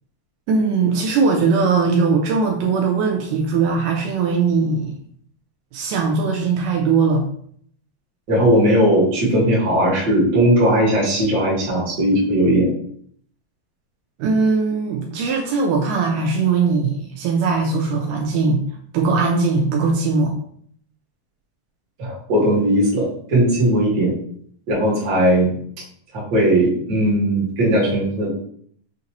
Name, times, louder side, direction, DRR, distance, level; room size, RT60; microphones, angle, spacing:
voice 1, 0.5-5.0 5.7-7.2 14.2-18.6 18.9-20.3, right 4 dB, 80° right, 1 dB, 2.0 m, -20 dB
voice 2, 8.3-12.7 22.0-24.1 24.7-25.5 26.1-28.3, right 1 dB, 45° right, -6 dB, 1.3 m, -18 dB
5.8 x 2.6 x 2.8 m, 0.63 s
omnidirectional pair, 3.9 m